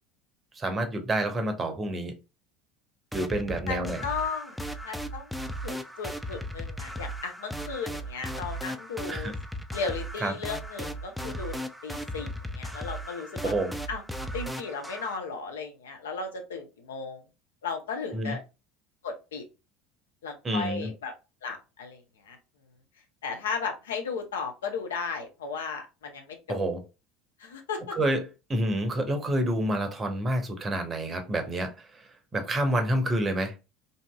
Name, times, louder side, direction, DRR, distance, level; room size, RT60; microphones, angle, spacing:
voice 1, 0.6-2.2 3.1-4.0 9.1-9.3 10.2-10.3 13.4-13.7 18.1-18.4 20.4-20.9 26.5-26.8 27.9-28.2 28.5-32.1 32.3-33.5, right 1 dB, 25° right, 0.7 m, -28 dB
sound 1, 3.1-15.2, equal, ahead, 0.3 m, -36 dB
voice 2, 3.7-4.6 4.8-9.3 9.7-13.5 13.9-14.0 14.3-17.2 17.6-18.4 19.0-19.4 20.2-21.1 21.4-22.4 23.2-26.6 27.4-28.0, left 5 dB, 70° left, 0.6 m, -35 dB
2.7 x 2.6 x 2.2 m
figure-of-eight pair, 70°, 0 cm